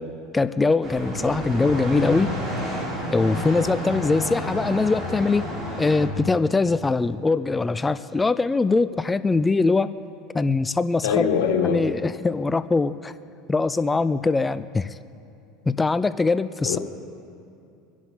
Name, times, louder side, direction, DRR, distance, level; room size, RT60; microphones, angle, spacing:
voice 1, 0.3-2.3 3.1-5.5 5.8-9.9 10.3-11.3 11.6-13.1 13.5-15.0 15.7-16.8, left 3 dB, 15° left, 14 dB, 0.4 m, -22 dB
sound 1, 0.8-6.1, equal, 30° right, 4.1 m, -30 dB
voice 2, 11.0-11.8 16.7-16.8, left 7 dB, 90° left, 1 dB, 1.8 m, -22 dB
26.0 x 11.0 x 3.9 m, 2.6 s
supercardioid pair, 125°, 0 cm